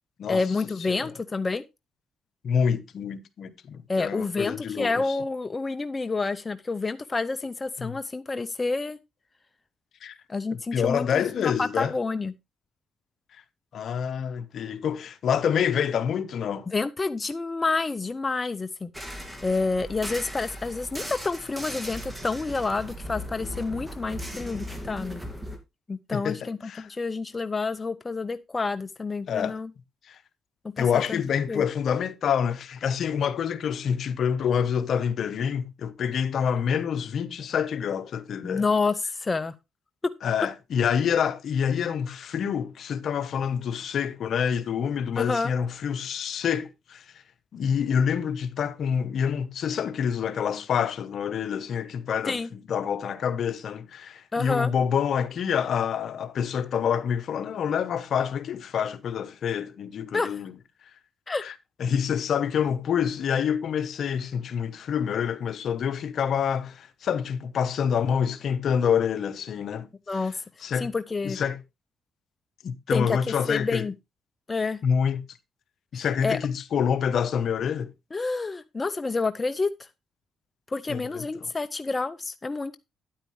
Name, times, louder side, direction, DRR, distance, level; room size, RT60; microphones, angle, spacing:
voice 1, 0.3-1.7 3.9-9.0 10.3-12.3 16.7-25.2 25.9-29.7 30.8-31.2 31.5-31.7 38.4-39.5 45.2-45.5 52.3-52.5 54.3-54.7 60.1-60.4 61.3-61.5 70.1-70.3 70.8-71.4 72.9-73.9 74.5-74.8 75.9-76.4 78.1-79.9 80.7-82.8, left 3 dB, 25° left, 0.6 m, -29 dB
voice 2, 2.4-4.9 7.8-7.9 10.0-10.1 10.5-11.9 13.7-16.7 26.1-26.9 29.3-29.6 30.1-30.2 30.8-38.6 40.2-47.0 47.5-52.4 52.7-60.5 61.4-61.5 61.8-69.9 70.6-70.9 71.2-71.6 72.6-73.9 74.8-75.2 75.9-77.9 80.9-81.2, left 7 dB, 65° left, 1.0 m, -27 dB
sound 1, 18.9-25.6, equal, 10° right, 2.1 m, -38 dB
9.6 x 9.0 x 3.2 m
cardioid pair, 90°, 0 cm